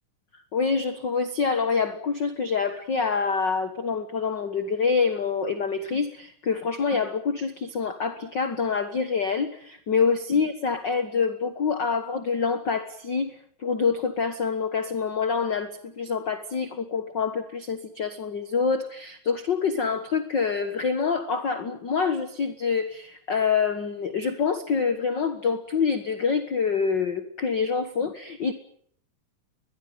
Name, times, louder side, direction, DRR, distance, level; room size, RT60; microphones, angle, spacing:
voice 1, 0.5-28.5, left 5 dB, 50° left, 9 dB, 1.4 m, -26 dB
22.0 x 21.5 x 9.4 m, 0.64 s
omnidirectional pair, 3.9 m